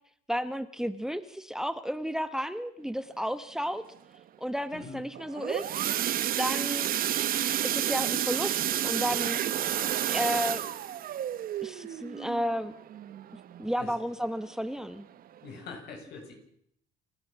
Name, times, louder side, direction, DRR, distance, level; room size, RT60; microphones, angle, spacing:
voice 1, 0.3-3.8 4.4-5.7 6.4-6.9 7.6-9.4 10.1-10.6 11.6-12.7 13.6-15.0, equal, 5° right, 13 dB, 1.1 m, -32 dB
sound 1, 5.1-13.8 14.2-14.5 14.8-14.9 15.4-15.5, right 11 dB, 60° right, 1.2 m, -30 dB
voice 2, 15.4-16.3, left 4 dB, 75° left, 3 dB, 7.6 m, -43 dB
29.5 x 12.5 x 7.5 m, 0.69 s
cardioid pair, 110°, 17 cm